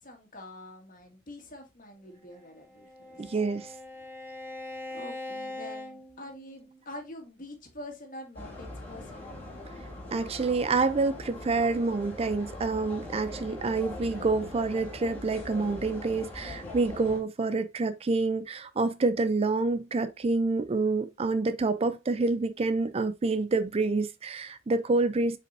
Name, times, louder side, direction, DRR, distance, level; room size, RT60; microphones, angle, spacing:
voice 1, 0.0-3.2 4.9-9.3, left 1 dB, 45° left, 2.0 m, -45 dB
Bowed string instrument, 2.3-6.8, left 2 dB, 10° right, 1.7 m, -42 dB
voice 2, 3.2-3.7 10.1-25.4, right 3 dB, 30° right, 0.4 m, -27 dB
sound 1, 8.3-17.2, left 1 dB, 10° left, 2.7 m, -41 dB
7.6 x 5.2 x 2.6 m
head